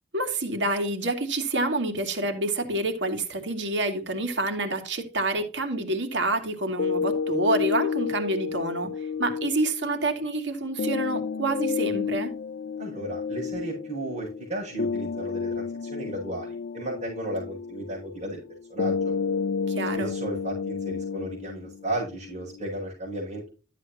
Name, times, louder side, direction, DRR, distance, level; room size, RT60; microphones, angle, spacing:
voice 1, 0.1-8.9 9.2-12.3 19.7-20.1, right 2 dB, 85° right, 2.5 m, -27 dB
sound 1, 6.8-22.8, left 5 dB, 75° left, 0.4 m, -31 dB
voice 2, 12.8-18.4 18.7-19.1 19.9-23.5, right 1 dB, 40° right, 6.6 m, -34 dB
13.0 x 8.4 x 2.9 m
head